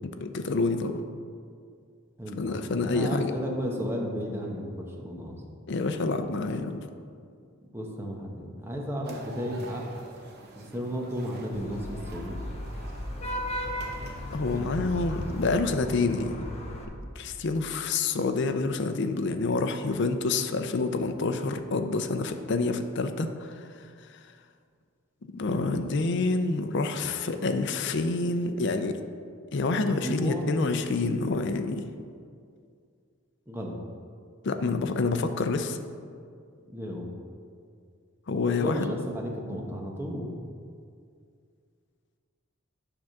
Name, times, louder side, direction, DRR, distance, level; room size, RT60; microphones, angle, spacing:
voice 1, 0.2-1.0 2.4-3.3 5.7-6.9 14.3-16.4 17.2-23.6 25.3-29.0 29.5-31.8 34.4-35.8 38.3-38.9, left 3 dB, 60° left, 7 dB, 0.5 m, -27 dB
voice 2, 2.2-5.4 7.7-10.0 10.5-12.4 14.5-14.9 30.0-30.5 33.5-33.8 36.7-37.1 38.6-40.4, equal, 10° right, 0 dB, 0.9 m, -33 dB
sound 1, 9.0-15.4, right 2 dB, 50° right, 0.9 m, -47 dB
Vehicle horn car horn honking / Traffic noise roadway noise, 11.5-16.8, equal, 30° left, 0.8 m, -35 dB
8.9 x 3.6 x 6.4 m, 2.2 s
head